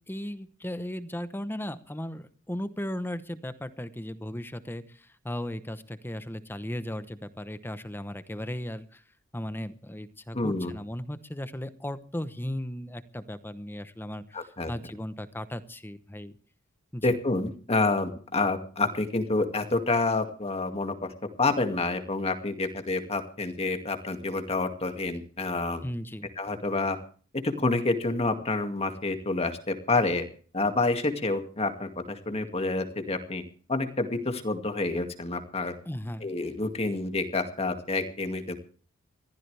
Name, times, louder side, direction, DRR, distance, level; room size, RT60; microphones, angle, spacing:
voice 1, 0.1-9.0 9.3-16.3 16.9-17.2 25.8-26.3 35.8-36.3, left 1 dB, 10° left, 12 dB, 0.9 m, -36 dB
voice 2, 10.3-10.7 14.3-14.7 17.0-21.1 21.4-25.8 26.4-27.0 27.6-30.2 30.5-33.4 33.7-35.7 36.2-38.6, left 3 dB, 30° left, 6 dB, 2.2 m, -28 dB
22.5 x 15.0 x 3.4 m, 0.42 s
head